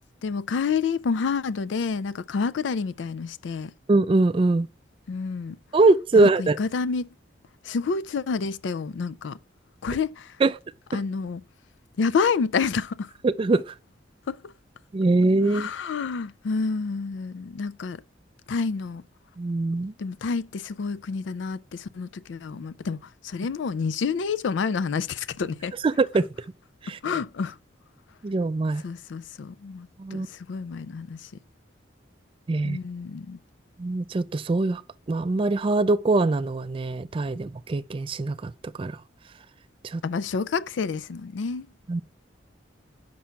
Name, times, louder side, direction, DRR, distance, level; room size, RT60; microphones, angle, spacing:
voice 1, 0.2-3.7 5.1-5.6 6.2-7.1 7.6-9.4 9.8-10.3 10.9-11.4 12.0-13.1 14.3-14.5 15.5-18.0 18.5-19.0 20.0-25.7 26.9-27.6 28.8-31.3 32.6-33.4 40.0-41.7, left 5 dB, 80° left, 0.4 m, -29 dB
voice 2, 3.9-4.7 5.7-6.6 10.4-10.6 13.2-13.7 14.9-15.7 19.4-19.9 25.8-26.3 26.8-27.0 28.2-28.8 30.0-30.3 32.5-32.8 33.8-34.8 35.1-38.5 38.8-38.9 39.8-40.0 41.9-42.0, right 2 dB, 30° right, 0.3 m, -22 dB
6.1 x 5.8 x 5.6 m
head